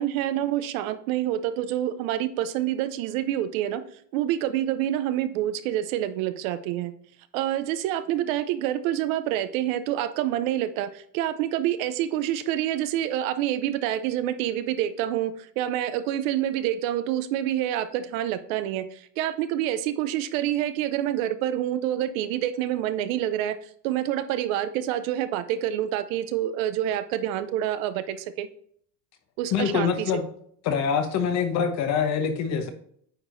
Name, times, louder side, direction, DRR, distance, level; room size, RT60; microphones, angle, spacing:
voice 1, 0.0-3.8 4.1-6.9 7.3-28.5 29.4-30.1, right 12 dB, 55° right, 12 dB, 0.7 m, -27 dB
voice 2, 29.5-30.2 30.6-32.7, left 7 dB, 35° left, 8 dB, 1.0 m, -25 dB
9.1 x 4.4 x 2.6 m, 0.62 s
supercardioid pair, 140°, 49 cm